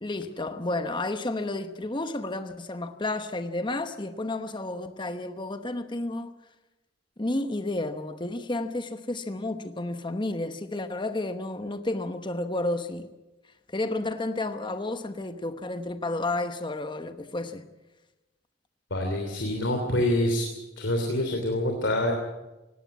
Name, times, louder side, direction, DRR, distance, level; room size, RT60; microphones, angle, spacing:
voice 1, 0.0-6.3 7.2-13.1 13.7-17.6, left 2 dB, 25° left, 1.0 m, -31 dB
voice 2, 18.9-20.4 20.8-22.1, left 1 dB, 75° left, 3.1 m, -26 dB
19.0 x 17.0 x 8.5 m
head